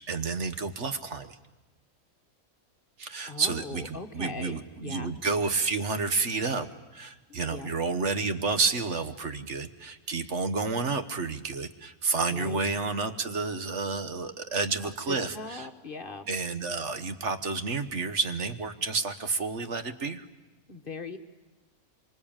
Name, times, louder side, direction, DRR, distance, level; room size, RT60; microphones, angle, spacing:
voice 1, 0.1-1.3 3.0-15.7 16.3-20.3, right 4 dB, 55° right, 9 dB, 1.4 m, -30 dB
voice 2, 3.3-5.1 7.3-7.7 12.3-12.6 15.1-16.3 20.7-21.2, left 3 dB, 40° left, 6 dB, 1.5 m, -40 dB
26.0 x 24.5 x 8.8 m, 1.1 s
omnidirectional pair, 1.5 m